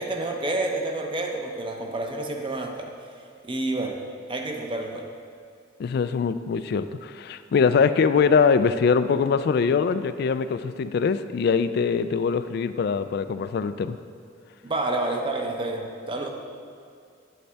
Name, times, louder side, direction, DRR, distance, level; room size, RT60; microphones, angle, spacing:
voice 1, 0.0-2.9 3.4-4.0 4.3-5.1 14.6-16.3, right 2 dB, 25° right, 3 dB, 0.7 m, -29 dB
voice 2, 5.8-14.0, left 5 dB, 55° left, 12 dB, 0.3 m, -23 dB
9.5 x 7.8 x 3.4 m, 2.3 s
head